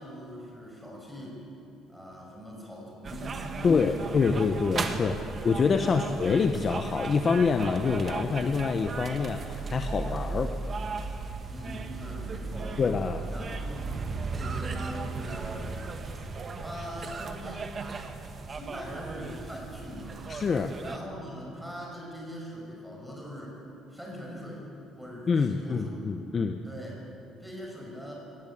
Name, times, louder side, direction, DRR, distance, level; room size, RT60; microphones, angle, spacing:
voice 1, 0.0-1.4 1.9-4.4 4.9-5.3 5.9-6.2 11.5-12.8 13.3-15.8 16.6-18.1 18.5-20.2 20.8-23.6 23.9-24.7 25.0-26.0 26.6-27.0 27.4-28.1, equal, ahead, -2 dB, 6.0 m, -42 dB
sound 1, 3.0-21.0, right 4 dB, 30° right, 1.5 m, -36 dB
voice 2, 3.6-5.2 5.4-10.5 12.8-13.2 20.3-20.8 25.3-26.6, left 5 dB, 30° left, 6 dB, 0.9 m, -26 dB
22.5 x 19.0 x 8.6 m, 2.8 s
cardioid pair, 155°, 0 cm